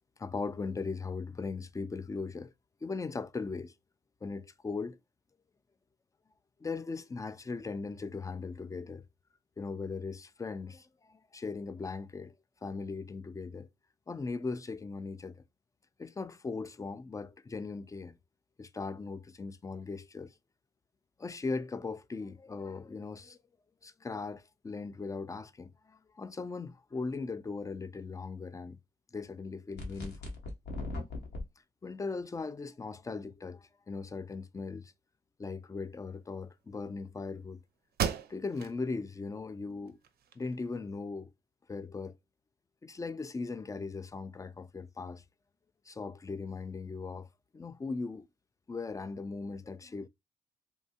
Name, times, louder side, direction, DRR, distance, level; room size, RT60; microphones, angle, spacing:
voice 1, 0.2-2.5 2.8-3.7 4.2-5.0 6.6-9.0 9.6-12.3 12.6-13.7 14.1-15.4 16.0-18.2 18.6-20.3 21.2-23.4 23.8-28.8 29.1-30.3 31.8-34.9 35.4-37.6 38.3-40.0 40.4-41.3 41.7-42.2 42.8-45.2 45.9-47.3 47.5-48.3 48.7-50.1, left 4 dB, 20° left, 0.3 m, -39 dB
sound 1, 29.8-31.4, left 2 dB, 75° left, 0.9 m, -38 dB
sound 2, 37.4-37.5 37.9-38.8 39.2-39.3 39.9-40.8, right 9 dB, 60° right, 0.5 m, -35 dB
2.6 x 2.2 x 2.7 m
hypercardioid pair, 45°, 18 cm